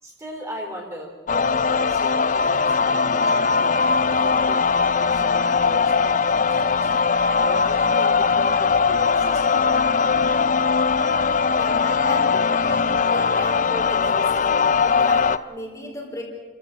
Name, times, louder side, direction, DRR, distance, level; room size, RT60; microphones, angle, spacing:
voice 1, 0.0-10.3, equal, 15° right, 0 dB, 3.9 m, -38 dB
sound 1, 1.3-15.4, left 5 dB, 45° left, 0.6 m, -20 dB
voice 2, 11.5-14.4 14.8-16.2, equal, 20° left, 0 dB, 4.1 m, -35 dB
29.5 x 14.5 x 7.8 m, 1.3 s
head